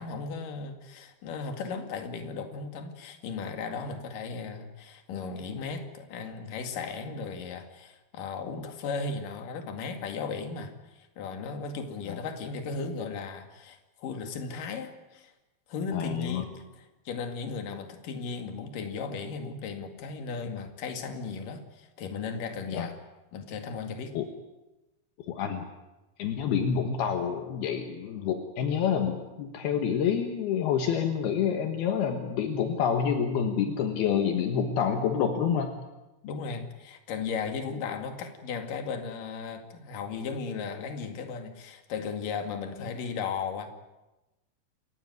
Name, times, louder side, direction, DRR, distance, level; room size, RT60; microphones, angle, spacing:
voice 1, 0.0-15.3 15.7-16.5 17.1-23.0 23.3-24.1 36.2-43.7, left 5 dB, 60° left, 6 dB, 3.5 m, -36 dB
voice 2, 15.9-16.5 22.7-22.9 24.1-24.3 25.3-25.7 26.2-35.7, left 7 dB, 75° left, 5 dB, 3.3 m, -28 dB
28.0 x 15.5 x 9.6 m, 1.0 s
omnidirectional pair, 4.7 m